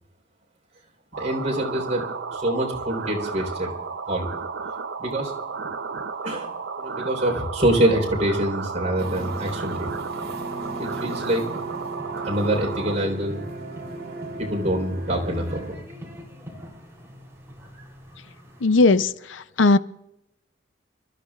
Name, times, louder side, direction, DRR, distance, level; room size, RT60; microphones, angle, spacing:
sound 1, 1.1-13.0, right 5 dB, 75° right, 0.8 m, -33 dB
voice 1, 1.2-2.0 2.3-3.7 4.1-4.3 5.0-5.3 6.2-9.9 10.8-11.4 12.2-13.4 14.4-15.8, right 1 dB, 40° right, 4.1 m, -25 dB
sound 2, 9.0-15.8, right 3 dB, 55° right, 2.2 m, -37 dB
sound 3, 9.4-19.0, equal, 15° right, 3.5 m, -42 dB
voice 2, 18.6-19.8, left 3 dB, 85° left, 0.6 m, -18 dB
29.0 x 14.0 x 2.5 m
head